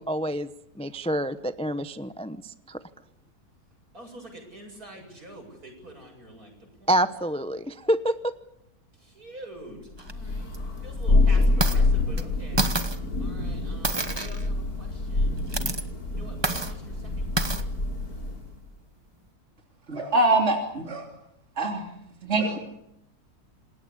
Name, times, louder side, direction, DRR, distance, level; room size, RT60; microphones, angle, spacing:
voice 1, 0.0-2.8 6.9-8.3, right 1 dB, 5° left, 11 dB, 0.5 m, -27 dB
voice 2, 3.9-6.9 9.0-10.5 10.8-12.7 13.0-15.4 16.1-17.7, right 1 dB, 65° right, 3 dB, 8.4 m, -46 dB
sound 1, 10.0-10.1 10.5-10.6 11.4-11.8 12.2-12.3 12.6-13.0 13.8-14.5 15.4-15.8 16.4-16.7 17.4-17.6, right 2 dB, 20° right, 1.1 m, -28 dB
Thunder, 10.1-18.5, left 2 dB, 65° left, 4.3 m, -26 dB
voice 3, 19.9-21.0 21.6-21.8 22.2-22.6, right 2 dB, 45° right, 2 dB, 3.5 m, -24 dB
27.5 x 20.5 x 8.5 m, 0.80 s
omnidirectional pair, 1.7 m